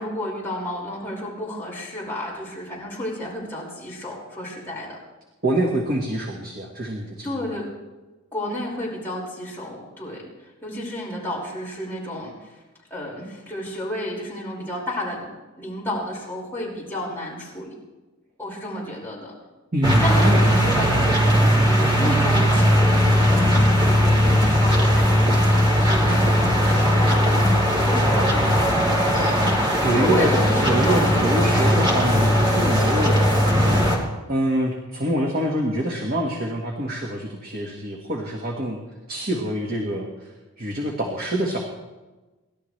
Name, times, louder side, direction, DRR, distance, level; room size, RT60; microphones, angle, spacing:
voice 1, 0.0-5.0 7.2-7.7 8.3-12.6 12.9-17.8 18.4-19.3 20.0-27.4 27.8-28.7 29.9-31.6, left 1 dB, 10° left, -6 dB, 5.4 m, -32 dB
voice 2, 5.4-7.5 19.7-20.4 29.8-33.2 34.3-38.8 39.1-40.3 40.6-41.6, right 1 dB, 40° right, 0 dB, 1.7 m, -25 dB
sound 1, 19.8-34.0, equal, 20° right, 2.9 m, -18 dB
28.5 x 12.5 x 3.3 m, 1.2 s
head